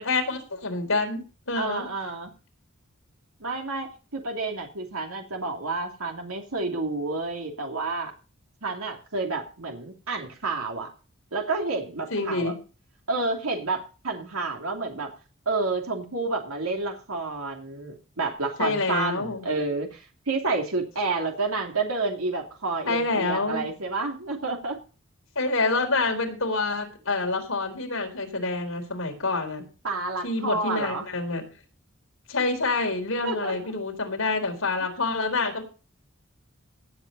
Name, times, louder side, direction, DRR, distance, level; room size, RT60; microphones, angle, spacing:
voice 1, 0.0-1.9 12.1-12.6 18.6-19.4 22.9-23.7 25.4-29.7 30.2-31.4 32.3-35.6, left 3 dB, 75° left, 4 dB, 4.3 m, -27 dB
voice 2, 1.5-2.3 3.4-8.1 8.6-10.9 11.3-12.5 13.1-15.1 15.5-24.8 29.8-31.0 33.2-33.7, right 3 dB, 90° right, 2 dB, 2.9 m, -30 dB
18.0 x 8.2 x 4.1 m, 0.35 s
head